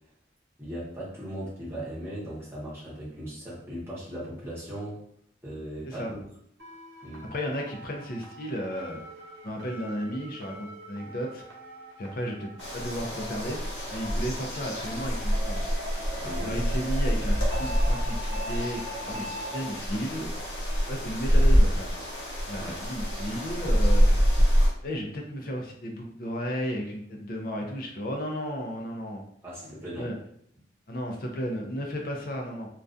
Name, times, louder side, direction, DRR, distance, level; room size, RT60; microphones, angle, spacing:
voice 1, 0.6-5.0 5.4-6.0 7.0-7.3 16.2-16.6 22.6-22.8 29.4-30.1, equal, 15° right, -7 dB, 0.9 m, -38 dB
sound 1, 6.6-19.7, equal, 85° right, 0.8 m, -43 dB
voice 2, 7.3-9.0 9.4-11.4 12.0-15.6 16.4-20.3 20.9-22.0 22.5-24.2 24.8-29.2 29.9-30.2 30.9-32.7, equal, 50° left, 1 dB, 0.4 m, -34 dB
sound 2, 12.6-24.7, equal, 80° left, 0.7 m, -26 dB
2.3 x 2.2 x 2.5 m, 0.67 s
head